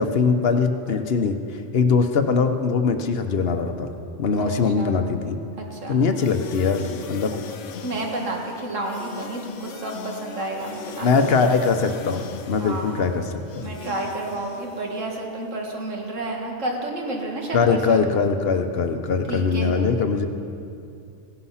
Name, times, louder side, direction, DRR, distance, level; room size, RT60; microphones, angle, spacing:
voice 1, 0.0-3.9 4.2-5.4 5.9-7.3 11.0-13.7 17.5-20.3, left 5 dB, 55° left, 7 dB, 1.0 m, -22 dB
voice 2, 4.4-5.0 5.6-6.0 7.8-11.5 12.6-13.0 13.6-18.1 19.3-19.8, right 2 dB, 75° right, 0 dB, 2.2 m, -31 dB
sound 1, 6.1-15.3, left 7 dB, 75° left, 1.0 m, -39 dB
16.0 x 11.5 x 5.7 m, 2.6 s
omnidirectional pair, 1.3 m